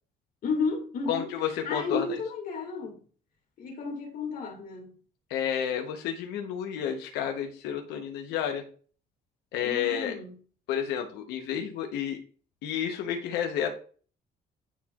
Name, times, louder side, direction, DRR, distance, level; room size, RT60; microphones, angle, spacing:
voice 1, 0.4-1.3 1.6-3.0 3.6-5.0 9.6-10.3, left 4 dB, 55° left, 2.1 m, -32 dB
voice 2, 1.1-2.1 5.3-8.6 9.5-10.2 10.7-12.2 12.6-13.7, left 9 dB, 85° left, 0.9 m, -30 dB
9.2 x 4.4 x 2.4 m
cardioid pair, 110°, 17 cm